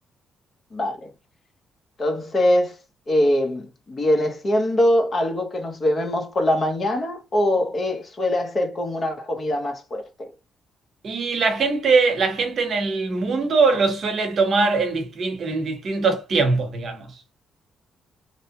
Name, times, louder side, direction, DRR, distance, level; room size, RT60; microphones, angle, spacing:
voice 1, 0.7-1.1 2.0-2.8 3.1-10.3, left 1 dB, 40° left, 0.9 m, -23 dB
voice 2, 11.0-17.1, right 4 dB, 55° right, 0.9 m, -21 dB
2.8 x 2.1 x 2.8 m
cardioid pair, 90°, 0 cm